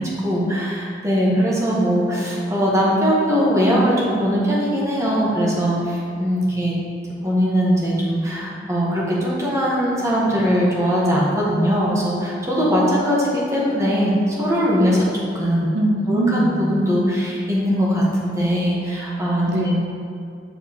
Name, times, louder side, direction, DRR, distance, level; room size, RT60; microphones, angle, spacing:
voice 1, 0.0-6.8 7.2-15.0 15.3-15.7 16.1-19.7, equal, 15° right, -5 dB, 1.3 m, -20 dB
voice 2, 15.7-16.7 19.5-19.8, right 1 dB, 85° right, 1 dB, 0.7 m, -21 dB
9.3 x 4.5 x 3.0 m, 2.4 s
head